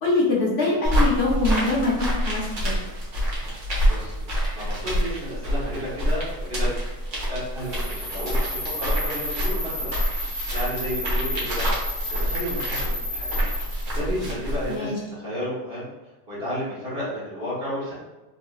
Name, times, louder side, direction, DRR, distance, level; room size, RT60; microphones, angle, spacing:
voice 1, 0.0-2.4 14.7-14.9, left 3 dB, 55° left, -5 dB, 1.0 m, -23 dB
sound 1, 0.8-14.8, equal, 65° right, 1.3 m, -27 dB
voice 2, 3.4-6.7 7.3-11.7 12.2-13.4 13.9-15.9 16.3-17.9, equal, 50° right, -8 dB, 1.5 m, -32 dB
sound 2, 7.6-13.9, equal, 15° right, 1.3 m, -32 dB
3.8 x 2.9 x 2.3 m, 1.1 s
omnidirectional pair, 1.4 m